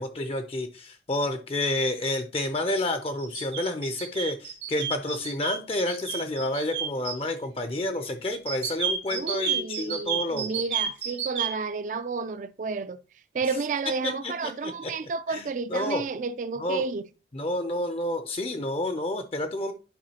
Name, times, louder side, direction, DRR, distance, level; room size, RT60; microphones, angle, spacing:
voice 1, 0.0-10.5 14.0-14.9 15.3-16.0 16.6-16.8 17.3-19.7, left 1 dB, 30° left, 0.5 m, -29 dB
sound 1, 3.2-7.2 8.5-11.5, right 8 dB, 85° right, 1.9 m, -30 dB
voice 2, 9.1-13.0 13.3-17.0, right 4 dB, 45° right, 0.3 m, -31 dB
10.5 x 4.8 x 2.8 m
head